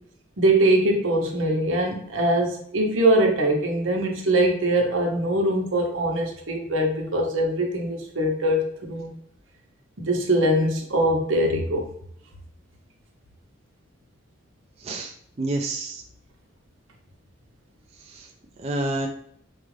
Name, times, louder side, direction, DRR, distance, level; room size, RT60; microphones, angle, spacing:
voice 1, 0.4-9.1 10.0-11.9, right 1 dB, 90° right, 1 dB, 0.9 m, -22 dB
voice 2, 14.8-16.0 18.1-18.3 18.6-19.1, right 2 dB, 35° right, 1 dB, 0.4 m, -29 dB
4.5 x 2.4 x 3.2 m, 0.65 s
head